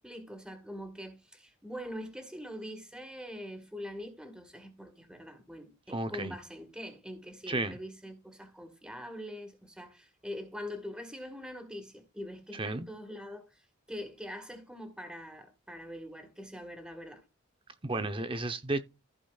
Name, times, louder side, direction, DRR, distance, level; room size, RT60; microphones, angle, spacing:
voice 1, 0.0-17.2, equal, 5° right, 1.6 m, -43 dB
voice 2, 5.9-6.3 7.5-7.8 12.5-12.9 17.8-18.8, right 2 dB, 25° right, 0.8 m, -33 dB
15.0 x 5.1 x 2.4 m
head